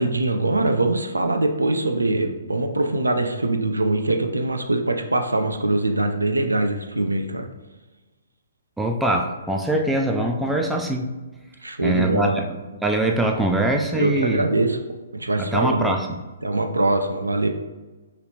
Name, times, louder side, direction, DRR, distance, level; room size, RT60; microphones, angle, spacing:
voice 1, 0.0-7.5 10.4-10.6 11.6-12.4 14.0-14.8 15.1-15.9 16.4-17.5, right 2 dB, 85° right, 5 dB, 0.4 m, -22 dB
voice 2, 8.8-11.1 11.8-12.5 12.8-14.5 15.4-16.2, right 1 dB, 5° right, 2 dB, 0.3 m, -23 dB
3.2 x 3.0 x 2.8 m, 1.2 s
figure-of-eight pair, 125°, 0 cm